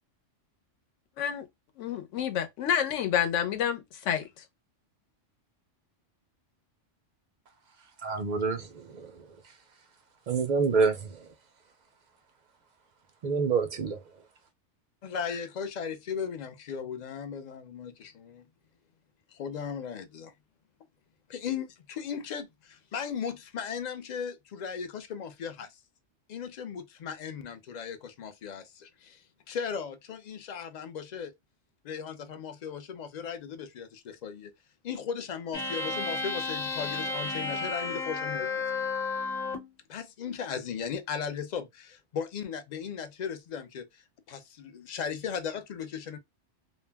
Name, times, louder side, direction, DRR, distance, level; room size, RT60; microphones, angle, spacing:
voice 1, 1.8-4.4, left 9 dB, 75° left, 1.0 m, -29 dB
voice 2, 8.0-9.1 10.3-11.3 13.2-14.0, right 5 dB, 70° right, 0.4 m, -27 dB
voice 3, 15.0-18.5 19.3-20.3 21.3-25.7 26.3-31.3 31.8-34.5 34.8-38.9 39.9-44.0 44.3-46.2, left 7 dB, 60° left, 0.4 m, -37 dB
sound 1, 35.5-39.7, left 3 dB, 35° left, 1.1 m, -32 dB
2.4 x 2.0 x 3.3 m
omnidirectional pair, 1.3 m